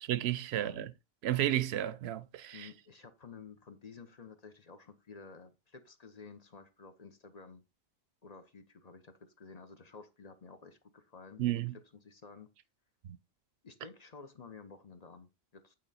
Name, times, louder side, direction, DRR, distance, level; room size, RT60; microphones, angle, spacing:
voice 1, 0.0-0.9 1.2-2.7 11.4-11.8, right 13 dB, 80° right, 0.8 m, -32 dB
voice 2, 2.5-7.6 8.2-11.6 12.0-12.5 13.6-15.7, left 4 dB, 40° left, 0.8 m, -52 dB
8.6 x 3.7 x 4.1 m
omnidirectional pair, 1.1 m